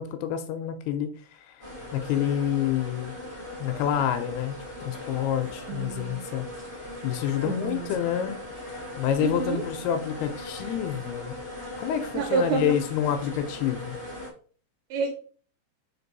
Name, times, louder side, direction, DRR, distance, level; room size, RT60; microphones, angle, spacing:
voice 1, 0.0-3.1 3.6-4.6 4.8-6.5 7.0-11.4 11.8-14.0, left 10 dB, 85° left, 9 dB, 2.5 m, -28 dB
sound 1, 1.6-14.3, left 1 dB, 25° right, 0.7 m, -39 dB
voice 2, 5.7-6.2 7.4-7.9 9.2-9.6 12.1-12.7 14.9-15.1, right 7 dB, 80° right, 5 dB, 2.5 m, -28 dB
5.3 x 4.6 x 4.0 m, 0.43 s
omnidirectional pair, 4.7 m